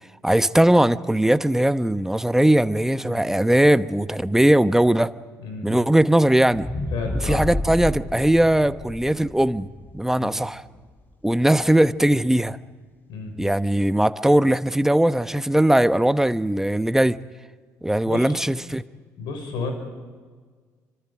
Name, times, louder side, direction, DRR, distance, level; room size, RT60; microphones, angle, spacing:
voice 1, 0.2-5.1 5.6-6.7 7.2-9.7 9.9-10.6 11.2-12.6 13.4-17.2 17.8-18.8, right 1 dB, 5° right, 14 dB, 0.9 m, -19 dB
voice 2, 5.4-5.7 6.9-7.4 10.2-10.4 13.1-13.3 18.0-18.4 19.2-19.7, left 4 dB, 65° left, 5 dB, 5.9 m, -32 dB
sound 1, 6.5-10.8 11.3-11.4, left 2 dB, 25° left, 2.9 m, -30 dB
28.0 x 25.5 x 5.0 m, 1.5 s
hypercardioid pair, 50°, 8 cm